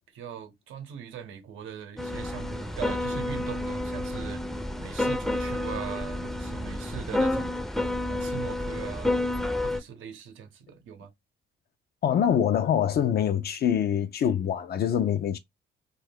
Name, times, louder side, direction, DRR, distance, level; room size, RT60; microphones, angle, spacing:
voice 1, 0.1-4.4 4.8-7.6 8.0-9.1 9.6-11.1, right 8 dB, 85° right, 0.8 m, -40 dB
sound 1, 2.0-9.8, left 1 dB, ahead, 0.5 m, -30 dB
voice 2, 12.0-15.4, left 9 dB, 55° left, 0.4 m, -24 dB
2.3 x 2.2 x 3.4 m
cardioid pair, 90°, 20 cm